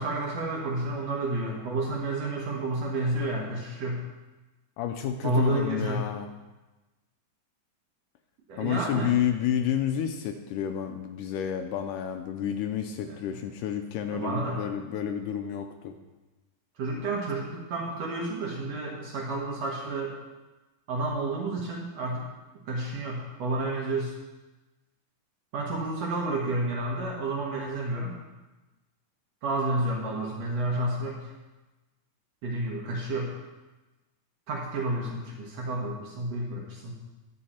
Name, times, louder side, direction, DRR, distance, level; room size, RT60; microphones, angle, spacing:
voice 1, 0.0-4.0 5.2-6.0 8.5-9.1 13.1-13.2 14.1-14.6 16.8-20.2 20.9-22.2 22.7-24.1 25.5-28.1 29.4-31.2 32.4-33.4 34.5-36.9, right 2 dB, 60° right, -2 dB, 1.9 m, -30 dB
voice 2, 4.8-6.3 8.6-16.0, left 9 dB, 80° left, 6 dB, 2.0 m, -30 dB
11.0 x 7.6 x 4.3 m, 1.1 s
omnidirectional pair, 4.0 m